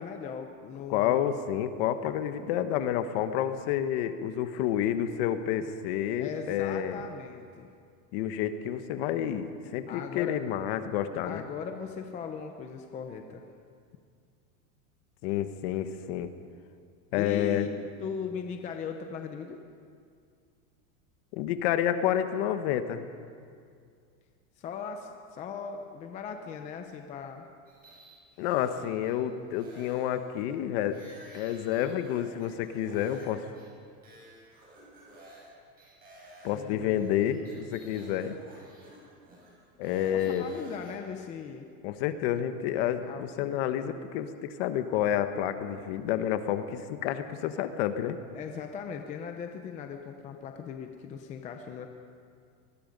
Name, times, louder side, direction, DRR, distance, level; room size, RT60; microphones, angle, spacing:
voice 1, 0.0-1.2 6.2-7.7 9.9-10.4 11.2-13.4 17.2-19.6 24.6-27.5 36.5-37.1 40.1-41.7 43.0-43.6 48.3-51.9, left 6 dB, 15° left, 5 dB, 0.7 m, -39 dB
voice 2, 0.9-7.0 8.1-11.4 15.2-16.3 17.1-17.7 21.3-23.1 28.4-31.0 31.3-33.5 36.4-38.4 39.8-40.5 41.8-48.2, left 10 dB, 45° left, 9 dB, 1.3 m, -29 dB
sound 1, 27.7-29.1 29.5-33.3 33.5-33.7 34.0-35.5 35.8-40.9, right 1 dB, 20° right, 6.7 m, -53 dB
25.0 x 20.5 x 5.3 m, 2.2 s
supercardioid pair, 170°, 43 cm